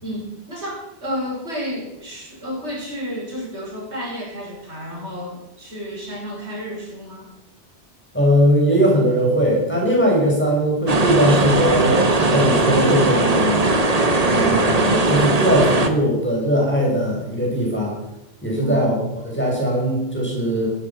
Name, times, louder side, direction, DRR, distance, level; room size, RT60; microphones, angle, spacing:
voice 1, 0.0-7.3 18.6-18.9, equal, 90° right, -2 dB, 6.1 m, -31 dB
voice 2, 8.1-12.0 12.3-13.7 14.3-17.9 18.4-19.0 19.2-20.7, equal, 10° left, -3 dB, 6.6 m, -19 dB
sound 1, 10.9-15.9, right 2 dB, 35° right, 1.5 m, -18 dB
18.0 x 12.5 x 6.0 m, 0.87 s
omnidirectional pair, 1.1 m